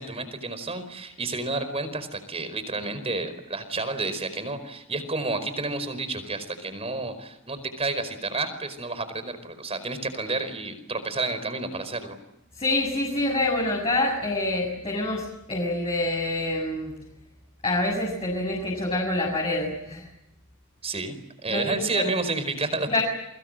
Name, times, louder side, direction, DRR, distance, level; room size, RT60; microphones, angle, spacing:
voice 1, 0.0-12.2 20.8-21.2 21.4-23.0, right 3 dB, 30° right, 11 dB, 4.8 m, -30 dB
voice 2, 12.6-16.9 17.6-20.0 21.5-22.0 22.9-23.0, left 2 dB, 25° left, -1 dB, 7.5 m, -26 dB
29.5 x 24.0 x 7.8 m, 0.85 s
head